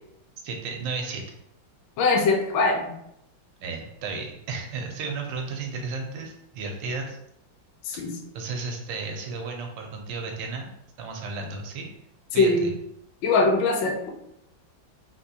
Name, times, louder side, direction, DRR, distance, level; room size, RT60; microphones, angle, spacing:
voice 1, 0.4-1.2 3.6-7.2 7.9-8.1 8.3-10.7 11.0-11.9 12.3-12.7, right 4 dB, 75° right, 2 dB, 1.3 m, -33 dB
voice 2, 2.0-2.9 7.8-8.2 12.3-12.6 13.2-14.1, left 3 dB, 75° left, 1 dB, 1.1 m, -22 dB
3.6 x 2.5 x 2.7 m, 0.77 s
omnidirectional pair, 2.1 m